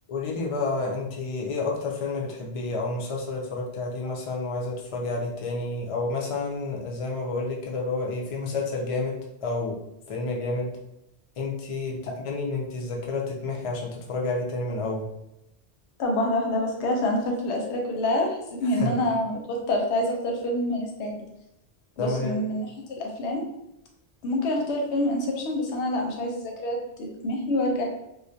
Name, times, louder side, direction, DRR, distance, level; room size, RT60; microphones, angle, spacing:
voice 1, 0.1-9.8 10.1-10.7 11.4-15.1 18.8-18.9 22.0-22.4, left 3 dB, 60° left, -1 dB, 0.3 m, -30 dB
voice 2, 16.0-21.2 22.0-23.4 24.2-27.8, left 1 dB, 85° left, 1 dB, 0.9 m, -27 dB
2.3 x 2.1 x 2.6 m, 0.84 s
omnidirectional pair, 1.1 m